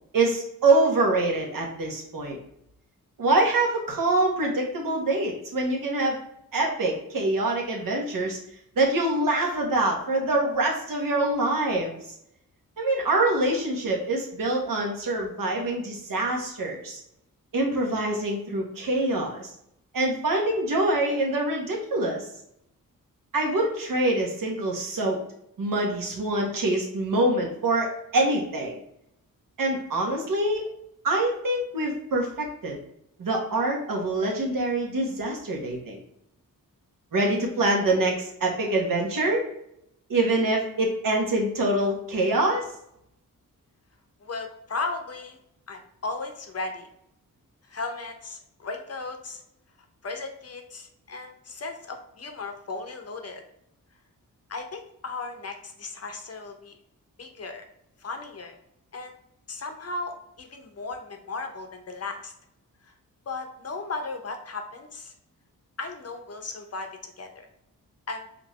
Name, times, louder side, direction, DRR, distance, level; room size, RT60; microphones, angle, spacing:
voice 1, 0.1-2.4 3.2-6.2 6.5-8.4 8.8-12.1 12.8-17.0 17.5-19.5 19.9-22.3 23.3-25.2 25.6-28.8 29.6-30.6 31.0-32.8 33.2-36.0 37.1-39.5 40.1-42.6, right 2 dB, 75° right, 0 dB, 1.2 m, -25 dB
voice 2, 44.2-45.4 45.7-46.9 47.7-49.4 50.0-53.4 54.5-56.7 57.2-57.6 58.0-58.6 58.9-59.1 59.5-62.3 62.8-62.9 63.3-65.1 65.8-67.5 68.1-68.3, left 3 dB, 45° left, 5 dB, 0.7 m, -36 dB
5.0 x 2.6 x 3.1 m, 0.76 s
wide cardioid pair, 115°, 34 cm